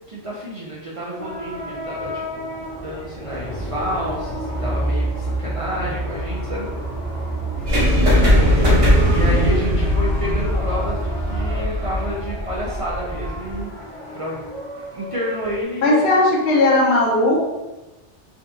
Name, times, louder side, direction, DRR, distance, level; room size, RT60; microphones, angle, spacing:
voice 1, 0.1-6.7 8.6-13.7 14.1-14.4 14.9-16.0, equal, 60° right, -6 dB, 0.3 m, -30 dB
sound 1, 1.2-15.6, left 1 dB, 30° left, 0.7 m, -34 dB
sound 2, 3.6-11.6, right 1 dB, 85° left, 1.3 m, -27 dB
sound 3, 7.7-13.6, equal, 35° right, 0.7 m, -19 dB
voice 2, 15.8-17.4, left 2 dB, 65° left, -3 dB, 0.9 m, -16 dB
3.6 x 2.3 x 2.7 m, 1.1 s
omnidirectional pair, 1.2 m